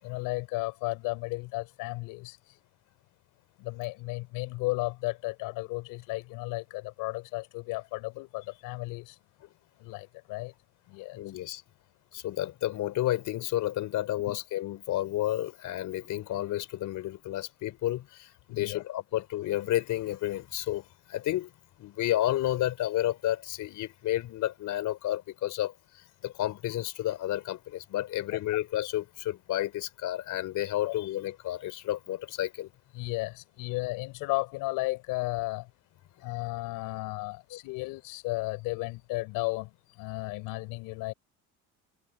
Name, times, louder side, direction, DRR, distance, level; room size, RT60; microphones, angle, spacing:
voice 1, 0.0-2.6 3.6-9.2 9.8-10.5 10.9-11.2 14.3-14.4 18.5-18.8 30.8-30.9 32.9-35.7 36.2-41.1, left 22 dB, 85° left, 6.0 m, -34 dB
voice 2, 11.1-11.6 12.1-21.5 21.8-32.7 37.5-37.9, left 14 dB, 65° left, 4.6 m, -31 dB
cardioid pair, 100°, 33 cm